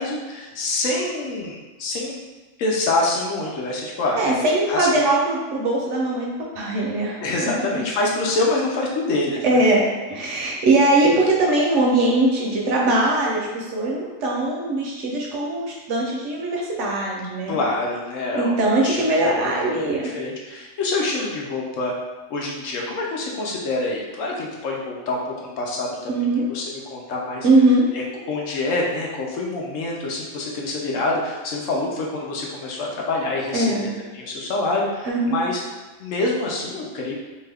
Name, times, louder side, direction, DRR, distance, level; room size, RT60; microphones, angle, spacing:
voice 1, 0.0-2.2 2.6-4.2 4.7-5.1 7.2-9.6 17.5-18.6 18.8-19.5 19.8-21.9 22.3-26.1 26.5-27.5 27.9-35.6 36.0-37.1, left 2 dB, 70° left, -2 dB, 0.9 m, -26 dB
voice 2, 4.2-7.2 9.4-17.6 18.3-20.1 26.1-26.5 27.4-27.9 33.5-33.9 35.1-35.4, right 2 dB, 65° right, -2 dB, 0.8 m, -21 dB
2.7 x 2.3 x 3.3 m, 1.2 s
omnidirectional pair, 1.4 m